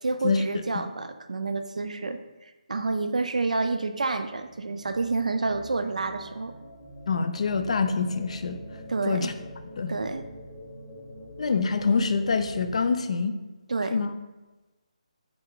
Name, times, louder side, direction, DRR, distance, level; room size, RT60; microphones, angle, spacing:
voice 1, 0.0-6.5 8.9-9.3 9.9-10.2 10.7-10.8 13.7-14.0, right 3 dB, 80° right, 9 dB, 0.4 m, -29 dB
sound 1, 3.9-12.9, equal, 5° left, 0.7 m, -45 dB
voice 2, 7.1-8.6 9.1-9.3 9.8-9.9 11.4-13.4 13.9-14.1, left 4 dB, 60° left, 8 dB, 0.4 m, -25 dB
4.0 x 3.5 x 2.9 m, 1.1 s
figure-of-eight pair, 155°, 4 cm